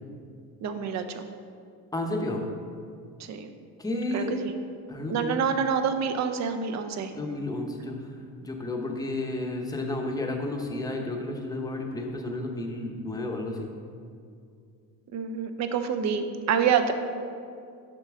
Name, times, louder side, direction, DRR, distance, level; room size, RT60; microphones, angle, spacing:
voice 1, 0.6-1.2 3.2-3.5 4.1-4.5 5.1-7.1 15.1-16.9, right 7 dB, 50° right, 7 dB, 0.6 m, -27 dB
voice 2, 1.9-2.4 3.8-4.3 4.9-5.4 7.1-8.0 8.4-13.7, left 2 dB, 10° left, 1 dB, 0.7 m, -32 dB
6.7 x 5.6 x 3.6 m, 2.3 s
cardioid pair, 115°, 35 cm